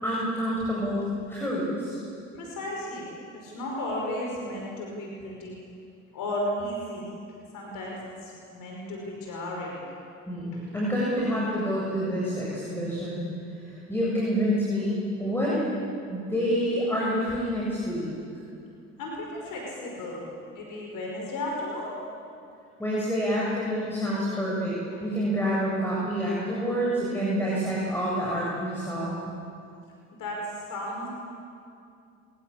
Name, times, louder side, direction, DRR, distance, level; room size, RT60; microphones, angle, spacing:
voice 1, 0.0-2.0 10.3-13.2 13.6-15.6 16.1-18.1 22.8-29.2, equal, 5° left, -6 dB, 7.7 m, -28 dB
voice 2, 2.3-3.0 3.3-5.6 6.1-7.1 7.5-9.8 10.5-10.6 19.0-21.9 30.2-31.1, left 1 dB, 55° left, -2 dB, 5.5 m, -34 dB
24.0 x 19.0 x 8.8 m, 2.5 s
figure-of-eight pair, 55°, 38 cm